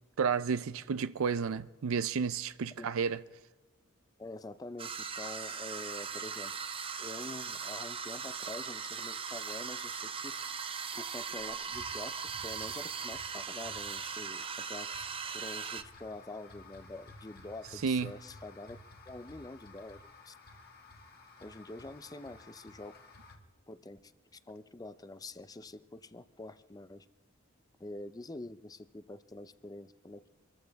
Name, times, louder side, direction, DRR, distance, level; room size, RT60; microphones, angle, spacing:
voice 1, 0.2-3.2 17.8-18.1, right 6 dB, 70° right, 0.4 m, -31 dB
voice 2, 4.2-6.5 7.0-10.4 11.0-12.2 12.4-15.1 15.3-18.8 19.1-20.3 21.4-22.9 23.7-27.1 27.8-30.3, left 2 dB, 20° left, 0.5 m, -46 dB
sound 1, 4.8-15.8, right 6 dB, 25° right, 0.6 m, -39 dB
sound 2, 5.2-23.4, left 3 dB, 45° left, 1.8 m, -55 dB
25.0 x 14.5 x 3.5 m
head